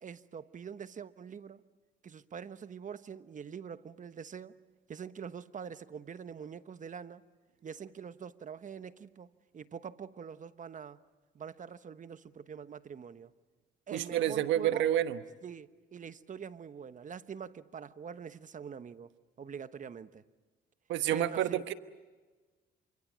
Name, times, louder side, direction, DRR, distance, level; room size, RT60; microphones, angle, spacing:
voice 1, 0.0-1.6 2.0-4.6 4.9-7.2 7.6-11.0 11.3-13.3 13.9-14.9 15.4-19.1 19.4-20.2 21.1-21.6, right 7 dB, 40° right, 13 dB, 1.1 m, -44 dB
voice 2, 13.9-15.2 20.9-21.7, right 11 dB, 80° right, 11 dB, 1.2 m, -29 dB
28.0 x 25.5 x 7.5 m, 1.3 s
supercardioid pair, 75°, 19 cm